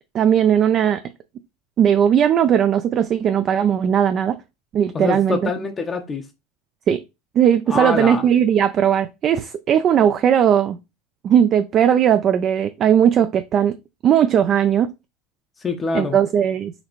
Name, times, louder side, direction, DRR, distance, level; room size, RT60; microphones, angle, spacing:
voice 1, 0.1-1.0 1.8-4.4 4.7-5.5 6.9-7.0 7.4-10.8 11.2-13.8 14.0-14.9 15.9-16.7, right 9 dB, 35° right, 0.3 m, -17 dB
voice 2, 4.9-6.2 7.7-8.2 15.6-16.2, left 4 dB, 20° left, 0.6 m, -25 dB
4.1 x 2.6 x 2.9 m
supercardioid pair, 120°, 0 cm